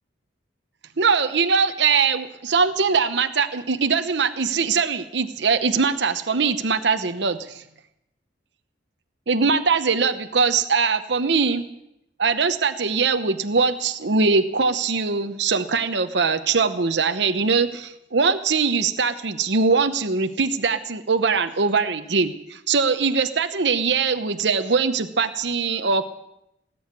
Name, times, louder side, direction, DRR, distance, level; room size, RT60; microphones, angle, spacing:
voice 1, 1.0-7.6 9.3-11.6 12.2-26.0, right 5 dB, 65° right, 8 dB, 0.9 m, -22 dB
18.5 x 7.9 x 9.7 m, 0.83 s
head